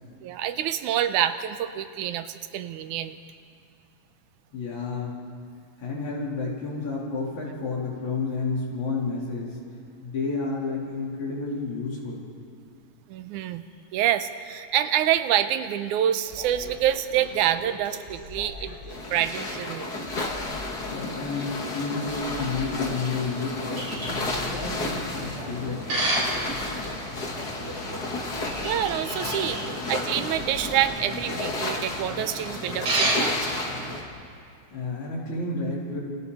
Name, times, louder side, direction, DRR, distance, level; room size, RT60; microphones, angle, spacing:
voice 1, 0.2-3.2 13.1-13.6 13.9-18.8 19.1-19.9 28.3-33.5, right 11 dB, 90° right, 10 dB, 2.3 m, -27 dB
voice 2, 4.5-5.2 5.8-9.6 10.0-12.3 20.9-24.1 24.4-25.9 34.7-36.0, left 4 dB, 75° left, -4 dB, 5.2 m, -31 dB
sound 1, 16.2-31.8, equal, 25° right, 3.7 m, -42 dB
sound 2, 18.9-34.0, left 2 dB, 35° left, 2.1 m, -33 dB
sound 3, 23.8-34.1, right 1 dB, 60° right, 6.7 m, -32 dB
28.0 x 25.0 x 4.3 m, 2.3 s
omnidirectional pair, 3.4 m